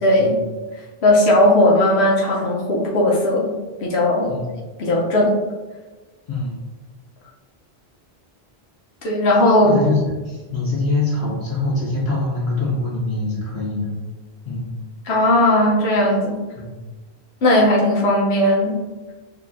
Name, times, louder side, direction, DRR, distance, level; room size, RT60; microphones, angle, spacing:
voice 1, 0.0-0.4 1.0-3.5 3.8-4.4 4.8-5.4 9.0-9.7 15.0-16.4 17.4-18.8, left 1 dB, 85° left, -3 dB, 1.1 m, -17 dB
voice 2, 6.3-6.6 9.6-13.9 14.4-14.7 16.5-16.8, left 2 dB, 35° left, -6 dB, 1.4 m, -24 dB
6.5 x 2.8 x 2.5 m, 1.3 s
omnidirectional pair, 1.1 m